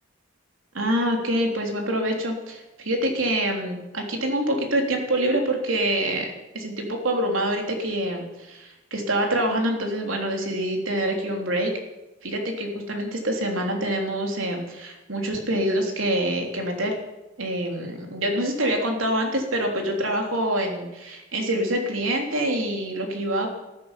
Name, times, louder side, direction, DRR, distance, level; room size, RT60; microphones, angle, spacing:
voice 1, 0.7-11.7 12.2-17.0 17.4-23.5, right 1 dB, 80° right, 2 dB, 3.5 m, -26 dB
14.0 x 10.5 x 9.0 m, 1.0 s
head